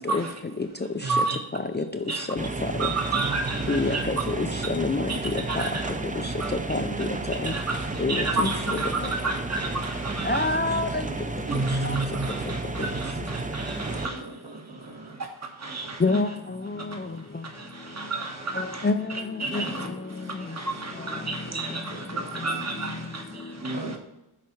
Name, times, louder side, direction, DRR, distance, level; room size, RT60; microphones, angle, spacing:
voice 1, 1.0-1.4 2.1-2.3 2.8-4.0 5.1-5.2 5.5-5.9 6.4-6.5 7.4-10.5 11.5-14.2 15.2-16.0 16.8-19.9 20.1-23.8, right 3 dB, 35° right, 2 dB, 1.4 m, -31 dB
voice 2, 2.4-2.9 3.7-5.1 6.7-7.1 7.4-7.5 8.0-9.1 10.2-11.1 11.8-12.0 16.0-17.1 18.5-19.7 20.4-20.5, left 3 dB, 25° left, 6 dB, 0.5 m, -27 dB
sound 1, 2.4-14.1, right 2 dB, 15° right, 0.6 m, -32 dB
voice 3, 13.8-15.2 15.6-16.0 19.4-20.0 21.5-21.6 21.9-23.2 23.6-24.0, right 2 dB, 60° right, -2 dB, 2.5 m, -40 dB
7.8 x 4.2 x 5.6 m, 0.94 s
wide cardioid pair, 70°, 45 cm